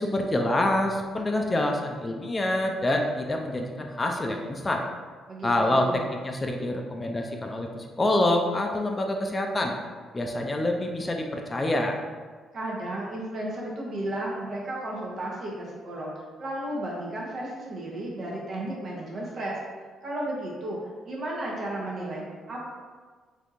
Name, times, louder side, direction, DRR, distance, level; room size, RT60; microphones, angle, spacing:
voice 1, 0.0-4.9 5.4-9.7 10.1-12.0, left 1 dB, 25° left, 2 dB, 0.4 m, -26 dB
voice 2, 5.3-6.1 12.5-16.1 16.4-19.6 20.0-22.6, right 1 dB, 55° right, -4 dB, 0.8 m, -33 dB
3.5 x 2.7 x 2.5 m, 1.5 s
cardioid pair, 90°, 0 cm